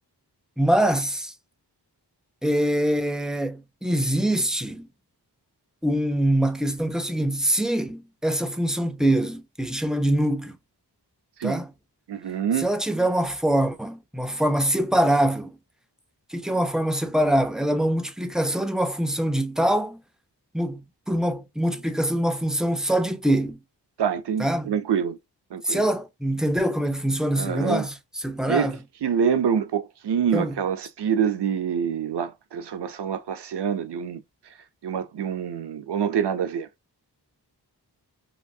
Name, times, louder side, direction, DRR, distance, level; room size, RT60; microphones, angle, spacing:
voice 1, 0.6-1.3 2.4-4.9 5.8-10.6 11.4-11.7 12.6-15.5 16.3-20.0 20.5-20.8 21.1-23.6 24.4-24.7 25.6-27.9 28.2-28.8 30.3-30.5, right 1 dB, ahead, 0.3 m, -24 dB
voice 2, 12.1-12.7 24.0-25.2 25.5-25.8 27.3-27.9 28.5-28.7 29.0-34.2 34.8-36.7, right 7 dB, 75° right, 0.5 m, -26 dB
3.0 x 2.3 x 2.6 m
wide cardioid pair, 70°, 42 cm